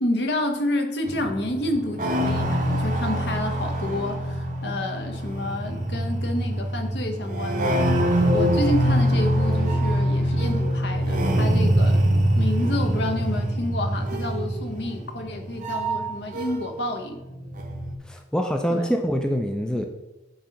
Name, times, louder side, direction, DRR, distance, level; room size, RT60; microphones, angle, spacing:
voice 1, 0.0-12.0 12.4-17.2 18.7-18.9, left 1 dB, 65° left, 5 dB, 0.8 m, -29 dB
sound 1, 1.1-16.8 17.1-18.0, right 1 dB, 45° right, 0.7 m, -24 dB
voice 2, 18.1-19.9, equal, 5° left, 3 dB, 0.3 m, -25 dB
7.8 x 2.8 x 5.1 m, 1.0 s
head